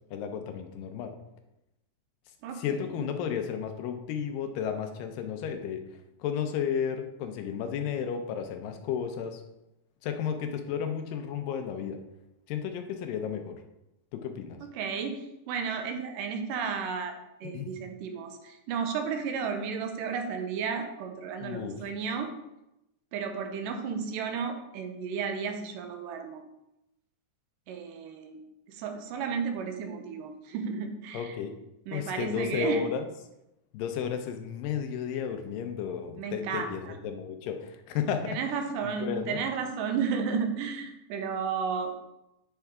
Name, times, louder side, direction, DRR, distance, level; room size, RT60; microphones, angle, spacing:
voice 1, 0.1-1.1 2.6-5.8 6.2-9.4 10.0-12.0 12.5-13.6 14.1-14.6 17.5-17.7 21.4-21.8 31.1-31.5 31.9-33.1 33.7-38.4 38.8-39.4, left 7 dB, 90° left, 6 dB, 2.4 m, -33 dB
voice 2, 2.4-3.1 14.7-22.3 23.1-26.4 27.7-28.4 28.7-31.4 31.9-32.8 36.2-36.9 38.3-42.0, right 6 dB, 85° right, 6 dB, 2.4 m, -33 dB
9.0 x 4.5 x 3.5 m, 0.90 s
omnidirectional pair, 3.8 m